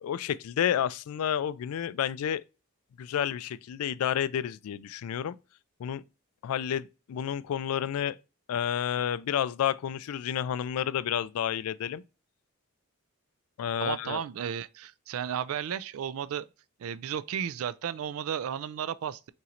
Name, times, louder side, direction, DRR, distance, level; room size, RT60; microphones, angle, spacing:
voice 1, 0.0-2.4 3.0-5.4 5.8-6.0 6.4-8.2 8.5-12.0 13.6-14.2, left 9 dB, 75° left, 0.3 m, -30 dB
voice 2, 13.8-16.5 16.8-19.3, right 8 dB, 65° right, 0.3 m, -34 dB
5.6 x 3.0 x 2.5 m
head